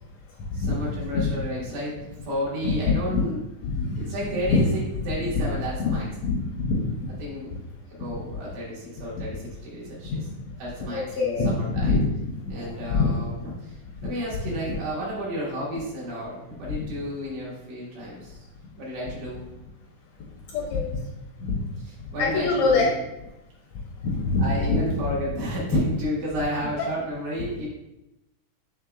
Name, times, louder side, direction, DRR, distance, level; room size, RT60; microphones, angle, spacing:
voice 1, 0.5-2.0 2.2-3.4 3.9-6.1 7.2-7.5 7.9-10.3 10.6-12.0 12.5-13.7 14.0-19.5 21.8-23.0 24.4-27.7, equal, 85° right, -7 dB, 3.2 m, -32 dB
voice 2, 3.6-4.0 4.5-4.6 5.8-5.9 6.2-6.8 10.1-10.2 10.9-11.5 11.8-12.0 12.6-13.1 20.5-20.9 21.5-21.6 22.2-22.9 24.0-24.5, left 4 dB, 75° left, -1 dB, 1.7 m, -24 dB
6.4 x 3.4 x 2.3 m, 0.91 s
omnidirectional pair, 3.7 m